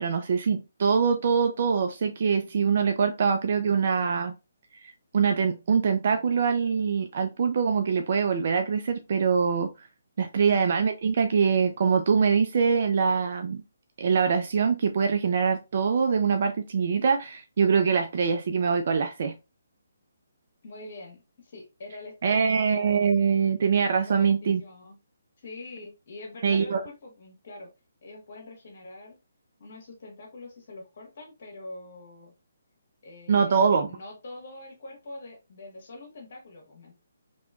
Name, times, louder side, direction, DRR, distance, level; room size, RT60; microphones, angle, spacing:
voice 1, 0.0-4.3 4.8-9.7 10.2-13.6 14.0-19.3 22.2-24.6 26.4-26.8 33.3-33.9, right 6 dB, 50° right, 0.3 m, -24 dB
voice 2, 20.6-22.6 24.0-24.9 25.4-27.7 28.0-29.2 29.6-32.3 33.0-36.9, left 2 dB, 55° left, 1.3 m, -44 dB
3.0 x 2.9 x 2.3 m
figure-of-eight pair, 145°, 0 cm